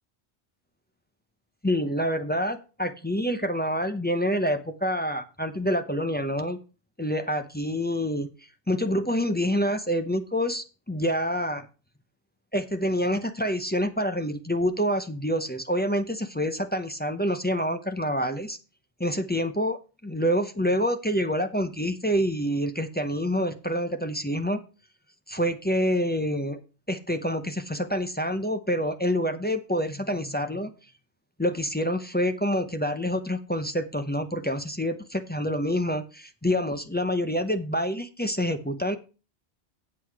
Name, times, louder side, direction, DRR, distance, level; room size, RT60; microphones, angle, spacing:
voice 1, 1.6-6.6 7.0-8.3 8.7-11.7 12.5-18.6 19.0-24.6 25.3-26.6 26.9-30.7 31.4-39.0, equal, 10° left, 8 dB, 0.6 m, -27 dB
8.3 x 7.8 x 4.6 m, 0.33 s
omnidirectional pair, 1.1 m